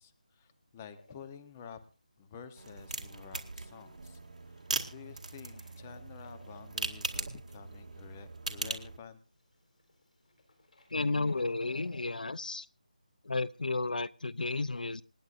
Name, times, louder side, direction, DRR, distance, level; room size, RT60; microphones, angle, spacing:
voice 1, 0.0-1.8 2.2-9.2, left 7 dB, 15° left, 9 dB, 0.9 m, -50 dB
sound 1, 1.0-1.7 2.4-2.9 3.3-3.4 3.6-7.0 7.4-7.7 8.1-8.2 8.5-9.0 9.4-12.2, left 2 dB, 65° left, 4.3 m, -59 dB
sound 2, 2.5-9.0, right 3 dB, 60° right, 2.1 m, -40 dB
voice 2, 10.9-12.7 13.2-15.0, left 3 dB, 85° left, 20 dB, 0.6 m, -32 dB
27.5 x 9.2 x 2.6 m, 0.33 s
figure-of-eight pair, 170°, 4 cm